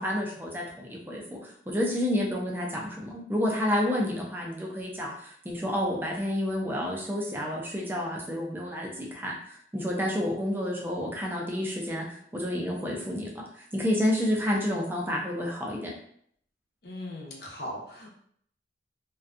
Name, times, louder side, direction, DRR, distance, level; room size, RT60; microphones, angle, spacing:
voice 1, 0.0-15.9, left 1 dB, 10° right, -2 dB, 0.4 m, -30 dB
voice 2, 16.8-18.1, left 1 dB, 60° left, -1 dB, 0.6 m, -38 dB
2.5 x 2.2 x 2.5 m, 0.66 s
head